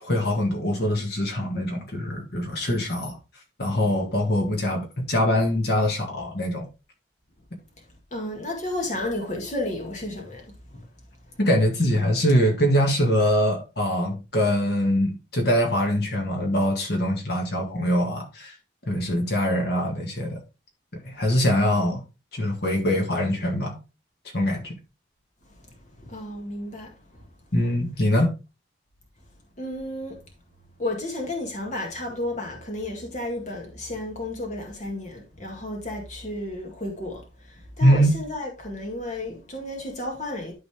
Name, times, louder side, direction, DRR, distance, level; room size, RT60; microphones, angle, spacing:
voice 1, 0.0-3.2 3.6-6.7 11.4-18.5 18.9-20.4 21.0-22.0 22.3-23.8 24.3-24.7 27.5-28.3 37.8-38.1, equal, 55° left, 2.0 m, -23 dB
voice 2, 8.1-10.5 10.7-10.8 26.1-26.9 29.6-30.2 30.8-37.2 37.8-40.5, left 1 dB, 40° left, 2.0 m, -32 dB
12.0 x 4.0 x 3.5 m
head